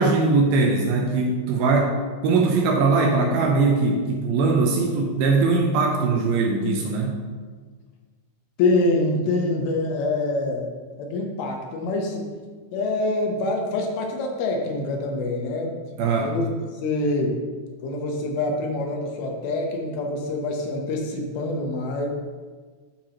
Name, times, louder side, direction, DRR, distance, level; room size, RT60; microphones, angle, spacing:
voice 1, 0.0-2.0 2.2-7.2 16.0-16.4, right 3 dB, 80° right, 1 dB, 2.3 m, -21 dB
voice 2, 8.6-10.7 11.0-12.3 12.7-15.8 16.2-16.5 16.8-17.4 17.8-22.1, left 2 dB, 75° left, 1 dB, 2.6 m, -25 dB
11.5 x 4.5 x 2.9 m, 1.5 s
omnidirectional pair, 4.6 m